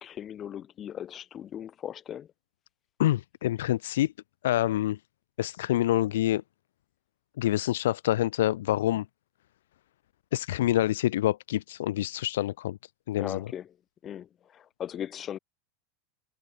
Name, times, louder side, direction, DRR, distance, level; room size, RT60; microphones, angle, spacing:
voice 1, 0.0-2.3 13.2-13.7 14.0-15.4, left 10 dB, 30° left, 2.0 m, -38 dB
voice 2, 3.0-4.1 4.4-5.0 5.4-6.4 7.4-9.1 10.3-12.8 13.1-13.5, left 14 dB, 90° left, 0.6 m, -26 dB
supercardioid pair, 140°, 0 cm